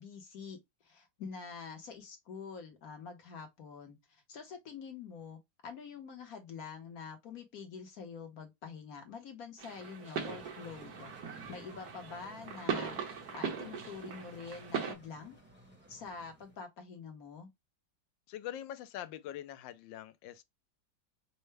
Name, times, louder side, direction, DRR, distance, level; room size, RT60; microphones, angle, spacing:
voice 1, 0.0-11.1 11.5-12.9 13.3-15.4 15.9-17.5, left 5 dB, 60° left, 1.2 m, -46 dB
sound 1, 9.6-14.9, right 6 dB, 60° right, 1.4 m, -39 dB
sound 2, 10.1-16.6, equal, 10° right, 0.8 m, -57 dB
voice 2, 18.3-20.4, left 11 dB, 85° left, 1.3 m, -43 dB
5.5 x 2.0 x 3.2 m
omnidirectional pair, 2.0 m